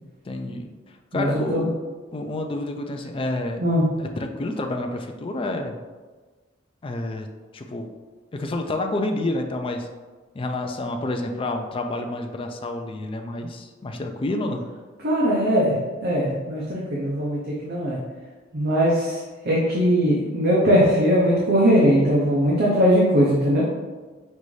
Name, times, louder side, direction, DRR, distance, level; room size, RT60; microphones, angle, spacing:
voice 1, 0.2-0.7 1.1-1.7 2.1-3.6 4.0-5.8 6.8-7.3 7.5-7.9 8.3-9.9 10.3-14.6, left 2 dB, 30° left, 4 dB, 0.4 m, -29 dB
voice 2, 1.1-1.7 3.6-3.8 15.0-15.8 16.0-18.0 18.5-19.2 19.4-23.6, equal, 50° right, -5 dB, 0.7 m, -20 dB
5.3 x 2.6 x 3.1 m, 1.3 s
head